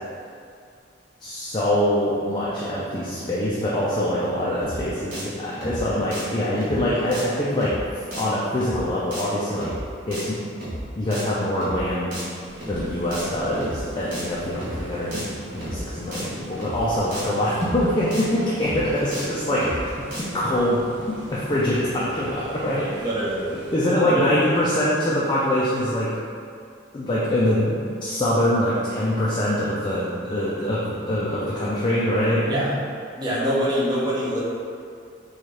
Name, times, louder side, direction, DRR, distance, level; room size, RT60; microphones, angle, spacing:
voice 1, 1.2-9.7 10.1-10.4 11.0-12.1 12.7-23.1 23.5-26.1 26.9-32.8, left 1 dB, 25° left, -8 dB, 0.4 m, -24 dB
sound 1, 4.6-4.8 5.1-5.2 5.5-5.8 6.1-6.2 6.6-6.8 7.1-7.2 7.5-7.8 8.1-8.2 8.6-8.8 9.1-9.2 9.5-9.8 10.1-10.2 10.6-10.8 11.1-11.2 11.5-11.8 12.1-12.2 12.6-12.8 13.1-13.2 13.5-13.8 14.1-14.2 14.6-14.8 15.1-15.2 15.5-15.8 16.1-16.2 16.6-16.8 17.1-17.2 17.5-17.8 18.1-18.2 18.6-18.8 19.1-19.2 19.5-19.8 20.1-20.2, equal, 50° right, 1.2 m, -33 dB
sound 2, 12.4-23.8, right 1 dB, 85° right, 0.5 m, -42 dB
voice 2, 23.0-23.5 24.1-24.3 32.5-32.7 33.2-34.4, right 1 dB, 25° right, -7 dB, 0.7 m, -24 dB
4.3 x 2.4 x 3.1 m, 2.3 s
head